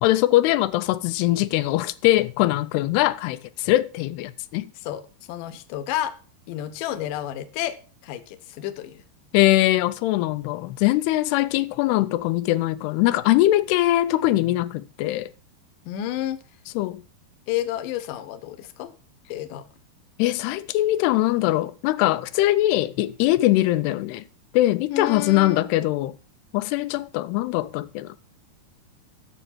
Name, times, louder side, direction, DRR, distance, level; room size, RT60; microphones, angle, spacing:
voice 1, 0.0-4.7 9.3-15.3 16.8-17.0 20.2-24.2 24.5-26.2 26.5-28.2, left 16 dB, 90° left, 2.7 m, -22 dB
voice 2, 5.3-6.1 6.5-7.8 8.0-9.0 15.9-16.4 17.5-18.9 19.3-19.6 24.9-25.7, left 12 dB, 70° left, 2.2 m, -30 dB
9.1 x 7.0 x 5.8 m
omnidirectional pair, 4.6 m